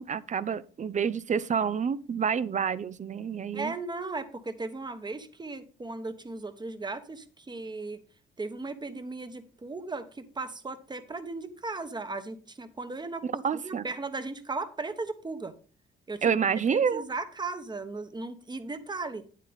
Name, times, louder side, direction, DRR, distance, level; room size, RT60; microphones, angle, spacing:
voice 1, 0.0-3.7 13.2-13.9 16.2-17.0, right 7 dB, 40° right, 0.6 m, -28 dB
voice 2, 3.5-8.0 8.4-15.5 16.1-16.3 16.7-19.2, right 3 dB, 20° right, 1.1 m, -37 dB
9.2 x 8.3 x 3.6 m
cardioid pair, 90°, 20 cm